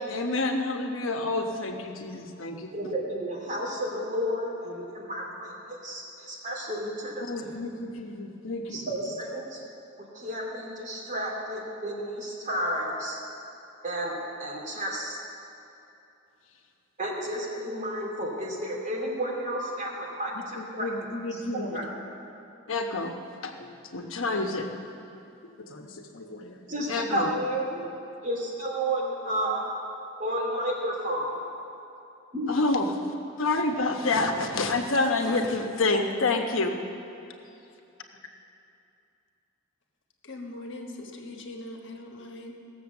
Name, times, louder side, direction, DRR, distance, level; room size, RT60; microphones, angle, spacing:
voice 1, 0.1-2.7 7.3-8.8 20.5-21.8 22.7-23.1 23.4-24.7 25.7-26.6 26.9-27.3 32.5-32.9 33.4-36.7, left 2 dB, 80° left, 4 dB, 1.1 m, -28 dB
voice 2, 2.7-7.6 8.7-9.6 10.1-13.2 13.8-15.2 17.0-20.9 21.3-21.8 26.7-27.8 28.2-29.7 30.2-31.4 32.3-32.5, right 1 dB, 40° right, -2 dB, 2.7 m, -32 dB
voice 3, 40.2-42.5, left 2 dB, 65° left, 2 dB, 1.4 m, -41 dB
17.0 x 7.2 x 7.1 m, 2.7 s
head